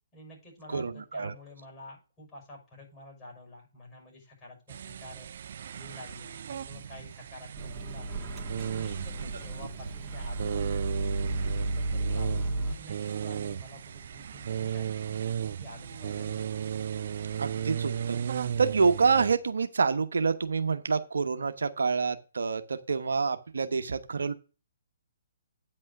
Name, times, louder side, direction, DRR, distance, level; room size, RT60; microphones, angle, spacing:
voice 1, 0.1-5.3 5.7-8.3 8.6-10.8 11.2-15.2 15.6-16.5, left 1 dB, 20° left, -1 dB, 6.1 m, -49 dB
voice 2, 0.7-1.3 9.2-9.3 17.4-18.2 18.6-24.3, right 5 dB, 80° right, 8 dB, 0.9 m, -27 dB
sound 1, 4.7-19.3, right 8 dB, 60° right, 0.5 m, -35 dB
Microwave oven, 7.5-12.7, right 2 dB, 15° right, 2.2 m, -33 dB
9.1 x 5.4 x 5.8 m, 0.33 s
hypercardioid pair, 145°, 0 cm